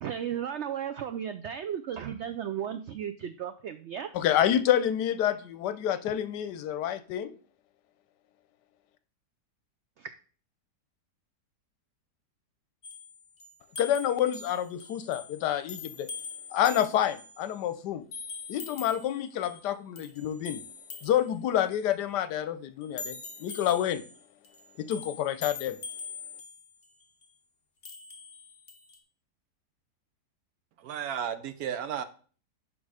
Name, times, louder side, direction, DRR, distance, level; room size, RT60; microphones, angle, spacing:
voice 1, 0.0-4.1 10.0-10.1, right 9 dB, 90° right, 0.6 m, -35 dB
voice 2, 4.1-7.3 13.8-16.1 16.5-18.0 18.5-20.6 21.0-24.0 24.8-25.8, left 10 dB, 85° left, 1.3 m, -28 dB
sound 1, 12.8-17.6 18.1-19.7 20.0-21.9 22.8-27.3 27.8-29.0, left 5 dB, 40° left, 1.0 m, -44 dB
voice 3, 30.8-32.0, right 8 dB, 70° right, 1.1 m, -33 dB
6.2 x 5.4 x 4.9 m
omnidirectional pair, 1.8 m